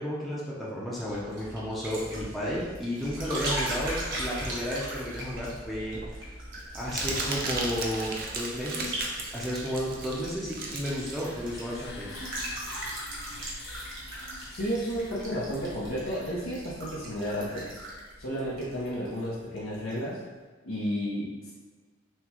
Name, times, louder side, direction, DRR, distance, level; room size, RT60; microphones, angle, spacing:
voice 1, 0.0-6.3 6.7-9.0 9.3-12.1, equal, ahead, -8 dB, 0.6 m, -33 dB
sound 1, 0.9-19.3 19.6-20.0, right 1 dB, 65° right, 1.2 m, -39 dB
Crumpling crinkling, 5.3-12.4, right 3 dB, 50° right, 0.6 m, -36 dB
sound 2, 10.8-16.5, left 2 dB, 55° left, 0.6 m, -46 dB
voice 2, 14.5-17.7 18.2-20.2 20.6-21.5, equal, 80° left, -8 dB, 0.9 m, -32 dB
6.0 x 2.3 x 2.9 m, 1.4 s
head